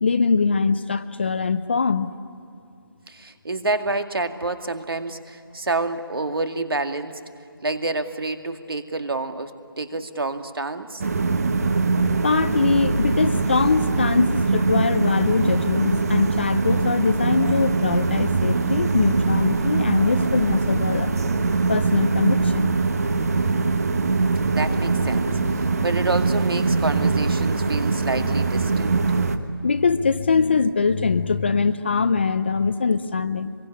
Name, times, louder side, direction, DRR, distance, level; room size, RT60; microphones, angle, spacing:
voice 1, 0.0-2.1 11.9-21.1 21.7-22.7 27.9-28.3 29.3-33.5, left 4 dB, 25° left, 12 dB, 0.6 m, -22 dB
voice 2, 3.1-7.2 7.6-11.0 24.5-29.0, right 3 dB, 65° right, 7 dB, 2.2 m, -28 dB
sound 1, 11.0-29.4, right 4 dB, 40° right, 1.4 m, -22 dB
26.5 x 23.0 x 9.9 m, 2.4 s
figure-of-eight pair, 170°, 13 cm